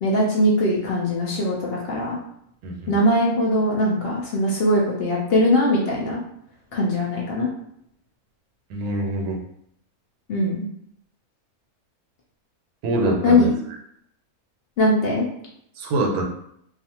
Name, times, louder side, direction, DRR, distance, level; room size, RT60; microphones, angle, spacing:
voice 1, 0.0-2.2 2.9-6.2 6.7-7.5 10.3-10.6 13.2-13.6 14.8-15.3, left 1 dB, 70° left, -3 dB, 0.6 m, -21 dB
voice 2, 2.6-2.9 8.7-9.4 12.8-13.5 15.8-16.2, right 2 dB, 85° right, 1 dB, 1.1 m, -24 dB
2.4 x 2.4 x 2.8 m, 0.72 s
omnidirectional pair, 1.5 m